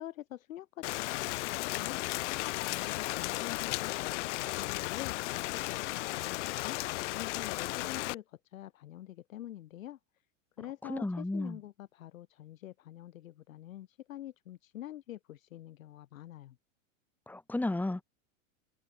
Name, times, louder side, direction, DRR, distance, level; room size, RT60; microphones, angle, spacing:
voice 1, 0.0-2.1 2.6-10.0 10.6-16.6, left 13 dB, 80° left, 4.4 m, -46 dB
Rain, 0.8-8.1, left 20 dB, 60° left, 0.8 m, -35 dB
voice 2, 10.8-11.6 17.3-18.0, left 2 dB, 5° left, 1.7 m, -33 dB
supercardioid pair, 135°, 39 cm